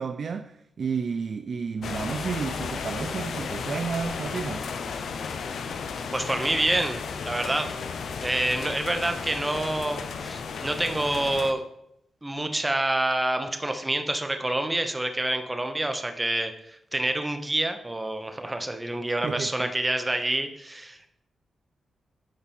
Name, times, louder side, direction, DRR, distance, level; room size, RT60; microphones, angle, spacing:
voice 1, 0.0-4.7 19.2-19.7, right 5 dB, 55° right, 0.3 m, -31 dB
sound 1, 1.8-11.5, left 5 dB, 75° left, 0.6 m, -34 dB
voice 2, 6.1-7.7 8.2-11.6 12.2-21.1, right 1 dB, 15° right, 0.8 m, -27 dB
8.9 x 4.2 x 4.3 m
cardioid pair, 100°, 0 cm